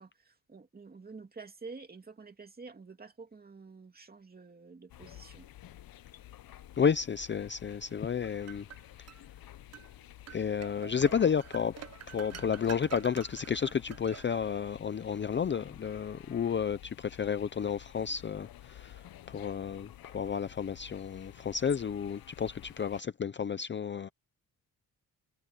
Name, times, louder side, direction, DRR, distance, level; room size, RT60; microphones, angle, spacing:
voice 1, 0.0-5.5, right 4 dB, 25° right, 2.6 m, -49 dB
sound 1, 4.9-23.0, left 12 dB, 75° left, 0.9 m, -51 dB
voice 2, 6.8-8.7 10.3-11.8 12.1-24.1, left 7 dB, 30° left, 0.6 m, -31 dB
sound 2, 7.9-9.2 9.7-9.9 10.3-14.7, right 10 dB, 45° right, 0.6 m, -48 dB
wide cardioid pair, 150°, 35 cm